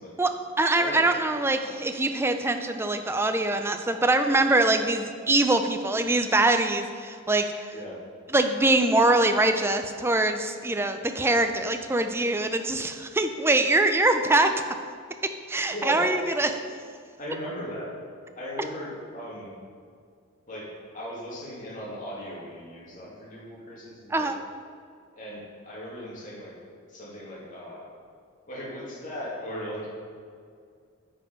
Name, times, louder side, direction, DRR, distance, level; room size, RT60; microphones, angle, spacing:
voice 1, 0.2-7.7 8.3-14.5 15.2-16.5 24.1-24.4, right 2 dB, 10° right, 7 dB, 0.4 m, -23 dB
voice 2, 0.7-1.1 7.7-8.0 15.7-16.1 17.2-17.9 18.3-19.5 20.5-20.7 20.9-24.3 25.1-26.5 26.9-27.9 28.5-29.9, equal, 40° left, -6 dB, 2.4 m, -37 dB
8.9 x 5.3 x 5.2 m, 2.2 s
head